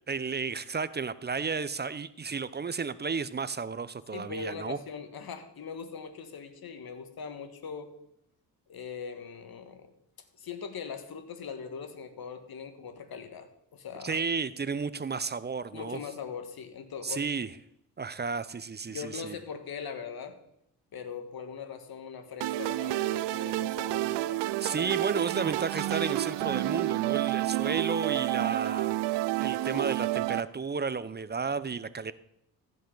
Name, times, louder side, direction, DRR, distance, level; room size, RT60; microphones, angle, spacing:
voice 1, 0.1-4.8 14.0-16.0 17.0-17.5 18.0-19.4 24.6-32.1, right 5 dB, 25° right, 16 dB, 0.6 m, -33 dB
voice 2, 4.1-7.9 8.7-9.9 10.4-14.2 15.7-17.3 18.8-20.4 20.9-24.4, left 6 dB, 55° left, 9 dB, 1.5 m, -41 dB
sound 1, 22.4-30.4, right 17 dB, 75° right, 0.5 m, -29 dB
15.0 x 5.6 x 3.9 m, 0.77 s
supercardioid pair, 50°, 43 cm